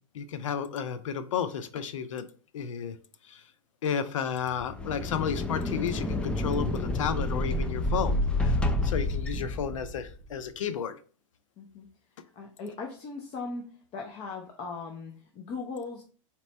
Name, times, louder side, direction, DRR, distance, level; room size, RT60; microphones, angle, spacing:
voice 1, 0.1-2.3 2.5-3.0 3.2-3.4 3.8-11.0, left 7 dB, 85° left, 0.5 m, -32 dB
sound 1, 4.5-10.2, left 1 dB, 5° left, 0.3 m, -29 dB
voice 2, 12.3-16.0, left 4 dB, 40° left, 0.7 m, -39 dB
4.1 x 2.9 x 3.3 m
hypercardioid pair, 115°, 16 cm